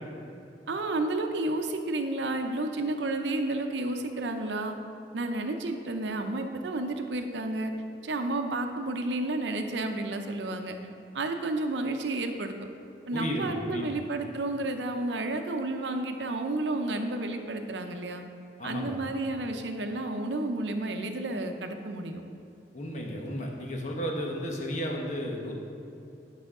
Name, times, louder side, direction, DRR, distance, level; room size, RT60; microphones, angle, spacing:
voice 1, 0.7-4.8 5.1-7.7 8.0-10.7 11.1-12.5 13.1-18.2 18.6-22.2, right 2 dB, 80° right, 5 dB, 0.7 m, -31 dB
voice 2, 13.1-14.0 18.6-19.0 22.7-25.5, equal, 45° left, 0 dB, 1.1 m, -33 dB
10.5 x 5.7 x 3.7 m, 2.6 s
head